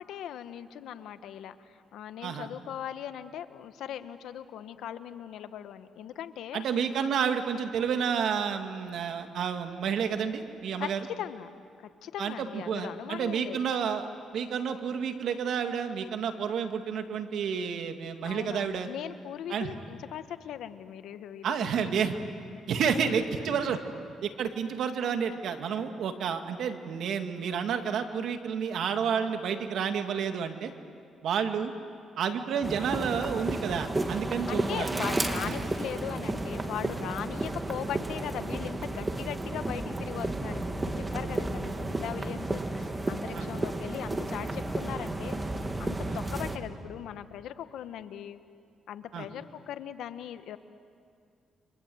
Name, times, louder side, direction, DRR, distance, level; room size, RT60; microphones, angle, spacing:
voice 1, 0.0-6.6 10.8-11.5 11.8-13.6 18.2-21.5 21.8-22.6 23.0-23.6 34.5-45.5 45.8-48.4 48.9-50.6, left 10 dB, 80° left, 11 dB, 1.1 m, -39 dB
voice 2, 6.5-11.0 12.2-14.1 14.3-18.9 19.5-19.7 21.4-22.2 22.7-23.8 24.2-30.7 31.2-31.7 32.2-35.1 35.5-35.6 43.3-43.5 46.0-46.2 49.1-49.3, right 7 dB, 70° right, 6 dB, 2.0 m, -30 dB
sound 1, 32.6-46.6, right 2 dB, 20° right, 2.2 m, -32 dB
30.0 x 25.0 x 7.9 m, 2.3 s
cardioid pair, 90°, 0 cm